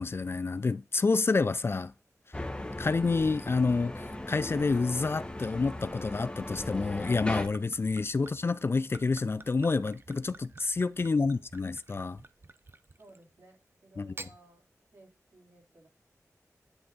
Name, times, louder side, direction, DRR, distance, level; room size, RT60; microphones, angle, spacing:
voice 1, 0.0-1.9 2.8-12.2 14.0-14.1, left 4 dB, 45° left, 0.3 m, -28 dB
sound 1, 2.3-7.5, left 1 dB, 15° left, 1.1 m, -38 dB
Gurgling / Chink clink / Liquid, 7.3-13.3 14.0-14.4, right 3 dB, 40° right, 0.5 m, -50 dB
voice 2, 10.9-11.7 13.0-14.6 14.9-15.9, right 2 dB, 60° right, 2.9 m, -59 dB
9.9 x 3.5 x 3.9 m
wide cardioid pair, 60°, 6 cm